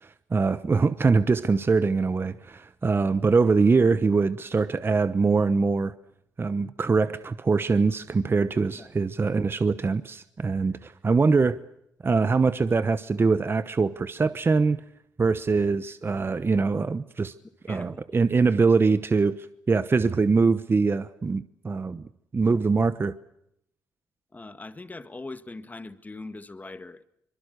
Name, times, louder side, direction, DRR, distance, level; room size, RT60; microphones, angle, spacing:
voice 1, 0.0-5.9 6.4-11.6 12.0-14.8 15.2-17.3 17.7-22.0 22.3-23.1, right 4 dB, 30° right, 1.0 m, -23 dB
voice 2, 17.7-18.2 24.3-27.0, left 2 dB, 20° left, 1.9 m, -41 dB
25.0 x 22.5 x 6.7 m
cardioid pair, 70°, 7 cm